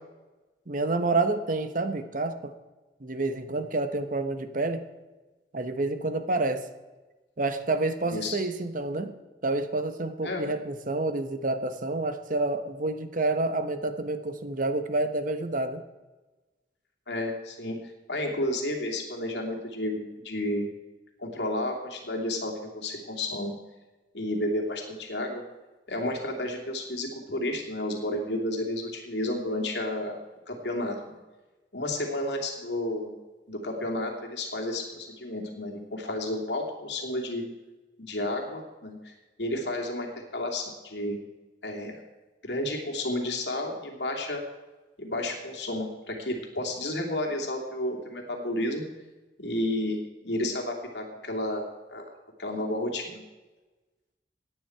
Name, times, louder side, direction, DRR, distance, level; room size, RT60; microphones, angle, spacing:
voice 1, 0.7-2.5 3.0-4.8 5.5-6.7 7.4-9.2 9.4-15.8, right 2 dB, 50° right, 9 dB, 1.0 m, -28 dB
voice 2, 8.0-8.4 10.2-10.5 17.1-17.8 18.1-20.7 21.2-23.5 24.1-25.4 25.9-30.2 30.5-31.2 31.7-33.1 33.5-37.4 38.0-39.1 39.4-41.2 41.6-42.0 42.4-44.4 45.0-48.8 49.4-51.6 51.9-52.0 52.4-53.2, left 1 dB, 75° left, 1 dB, 2.7 m, -31 dB
17.0 x 9.7 x 4.6 m, 1.2 s
head